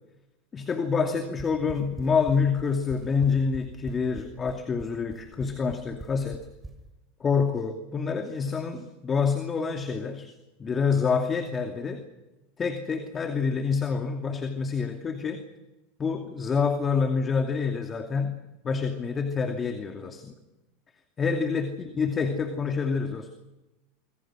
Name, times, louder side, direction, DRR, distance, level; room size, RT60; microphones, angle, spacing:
voice 1, 0.5-6.5 7.2-10.3 10.6-12.0 12.6-15.4 16.0-20.3 21.2-23.3, left 5 dB, 25° left, 6 dB, 2.6 m, -27 dB
sound 1, 1.2-6.7, right 2 dB, 10° right, 5.8 m, -42 dB
26.5 x 24.0 x 6.3 m, 1.0 s
hypercardioid pair, 110°, 0 cm